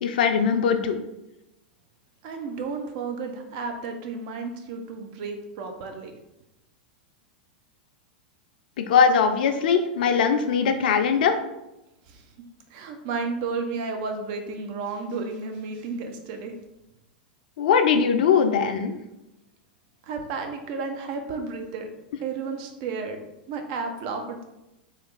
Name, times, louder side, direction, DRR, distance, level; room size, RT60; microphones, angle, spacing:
voice 1, 0.0-1.0 8.8-11.3 17.6-19.0, left 6 dB, 65° left, 7 dB, 0.4 m, -21 dB
voice 2, 2.2-6.1 12.1-12.3 12.7-16.6 20.0-21.9 22.2-23.2 23.5-24.4, right 4 dB, 55° right, 5 dB, 0.6 m, -32 dB
3.2 x 2.4 x 3.1 m, 0.92 s
hypercardioid pair, 100°, 5 cm